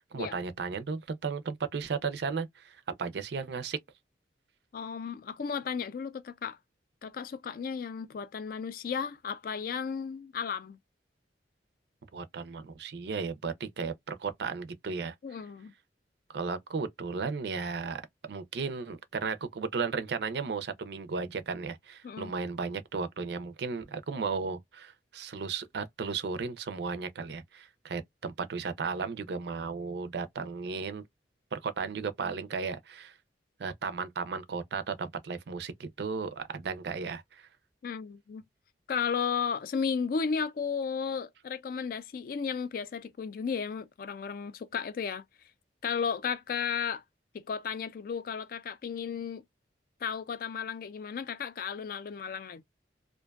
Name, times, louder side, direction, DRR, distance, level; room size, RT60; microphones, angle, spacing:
voice 1, 0.1-3.8 12.1-15.1 16.3-18.0 18.3-31.0 31.5-33.1 33.6-37.5, right 5 dB, 65° right, 0.4 m, -35 dB
voice 2, 4.7-6.6 7.0-10.8 15.2-15.7 22.0-22.3 37.8-38.4 38.9-45.2 45.8-47.0 47.3-49.4 50.0-52.6, left 6 dB, 50° left, 0.3 m, -34 dB
2.5 x 2.2 x 2.2 m
head